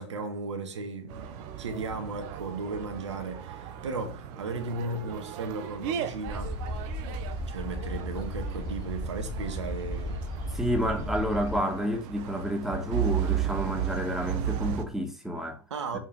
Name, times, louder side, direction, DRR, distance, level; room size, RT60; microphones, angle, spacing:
voice 1, 0.0-1.3 1.6-6.6 7.5-10.3 15.7-16.0, right 3 dB, 75° right, 2.2 m, -35 dB
sound 1, 1.1-14.8, right 10 dB, 50° right, 1.5 m, -35 dB
sound 2, 6.3-11.6, equal, 30° left, 5.0 m, -35 dB
voice 2, 10.5-15.6 15.9-16.0, equal, ahead, 2.9 m, -30 dB
7.8 x 5.7 x 6.7 m
figure-of-eight pair, 75°, 15 cm